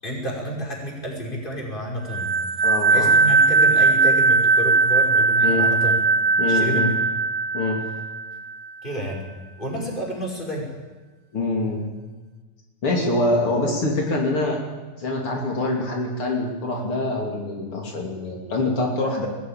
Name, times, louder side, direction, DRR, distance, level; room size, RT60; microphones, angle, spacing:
voice 1, 0.0-2.3 2.6-5.9 6.5-6.9 8.8-9.2 9.6-10.7, equal, 20° left, -2 dB, 5.7 m, -30 dB
sound 1, 2.1-8.6, right 3 dB, 85° right, 2.3 m, -19 dB
voice 2, 2.6-3.1 5.4-5.7 6.4-6.9 7.5-7.8 11.3-11.9 12.8-14.6 15.0-19.3, left 2 dB, 80° left, 0 dB, 3.8 m, -24 dB
21.0 x 15.5 x 9.0 m, 1.3 s
omnidirectional pair, 2.4 m